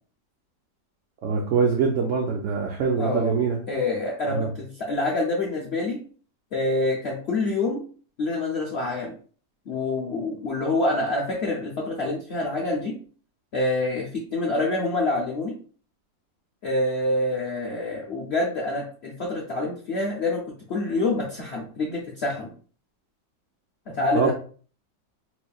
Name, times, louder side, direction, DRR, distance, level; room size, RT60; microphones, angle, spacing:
voice 1, 1.2-3.6 4.3-4.5 24.1-24.3, right 5 dB, 90° right, 0 dB, 0.6 m, -23 dB
voice 2, 3.0-3.4 3.7-6.0 6.5-7.8 8.2-9.1 9.7-13.0 13.5-15.5 16.6-20.4 20.7-22.5 23.9-24.3, left 2 dB, 75° left, -2 dB, 0.6 m, -26 dB
4.2 x 3.0 x 2.3 m, 0.42 s
omnidirectional pair, 1.9 m